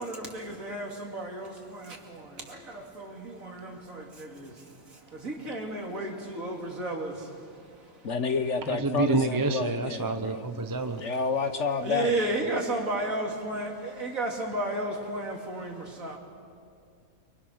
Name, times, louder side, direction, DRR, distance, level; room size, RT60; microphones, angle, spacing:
voice 1, 0.0-7.6 7.9-8.0 11.8-16.2, right 2 dB, 65° right, 1 dB, 3.2 m, -33 dB
voice 2, 8.0-10.5 10.8-12.5, left 5 dB, 55° left, 9 dB, 1.3 m, -30 dB
voice 3, 8.7-11.0, right 3 dB, 15° right, 7 dB, 0.7 m, -28 dB
29.0 x 24.0 x 6.4 m, 2.3 s
omnidirectional pair, 1.6 m